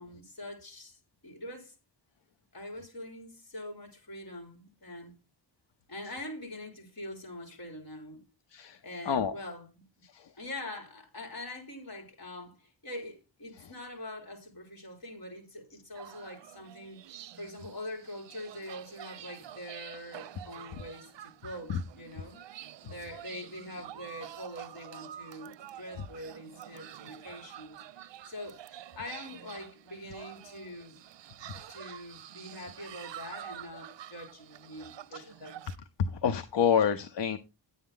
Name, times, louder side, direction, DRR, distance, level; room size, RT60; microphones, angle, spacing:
voice 1, 0.0-1.7 2.5-5.2 5.9-8.2 8.8-10.1 10.4-22.4 22.9-27.8 28.3-28.6 28.9-31.0 31.7-35.6, left 1 dB, 55° left, 3.5 m, -44 dB
voice 2, 8.5-9.3 10.0-10.4 13.5-13.7 20.7-20.8 21.7-21.8 22.8-22.9 31.5-31.6 35.1-35.3 36.1-37.4, left 7 dB, 75° left, 0.8 m, -29 dB
sound 1, 15.9-35.8, right 11 dB, 80° right, 0.5 m, -48 dB
10.5 x 8.5 x 3.8 m
wide cardioid pair, 140°, 43 cm